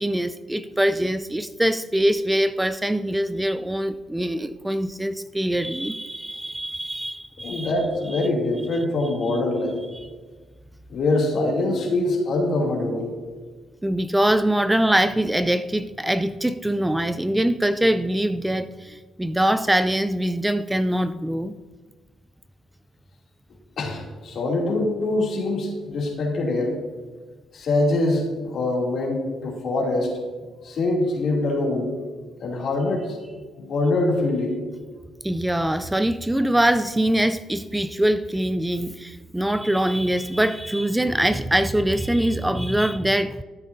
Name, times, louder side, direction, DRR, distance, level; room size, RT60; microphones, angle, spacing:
voice 1, 0.0-7.7 8.1-8.3 9.9-10.1 13.8-21.6 35.2-43.4, right 1 dB, 10° right, 12 dB, 0.3 m, -23 dB
voice 2, 7.4-9.8 10.9-13.1 23.8-26.8 27.5-30.1 30.6-31.9 32.4-33.2 33.6-34.5, left 2 dB, 60° left, -2 dB, 2.7 m, -24 dB
13.5 x 8.3 x 2.7 m, 1.4 s
cardioid pair, 90°, 0 cm